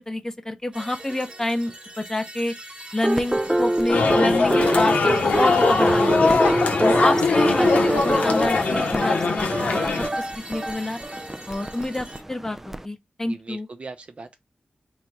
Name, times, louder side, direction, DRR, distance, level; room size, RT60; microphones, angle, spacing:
voice 1, 0.1-2.5 2.9-6.4 6.8-10.0 10.4-11.0 11.5-13.7, left 1 dB, 20° left, 0.7 m, -28 dB
sound 1, 0.7-12.2, right 1 dB, 35° right, 1.2 m, -42 dB
sound 2, 3.0-12.8, right 1 dB, 15° right, 0.4 m, -25 dB
sound 3, 3.9-10.1, left 4 dB, 85° left, 0.8 m, -21 dB
voice 2, 13.2-14.4, right 3 dB, 50° right, 0.7 m, -40 dB
4.0 x 2.2 x 4.4 m
wide cardioid pair, 90°, 3 cm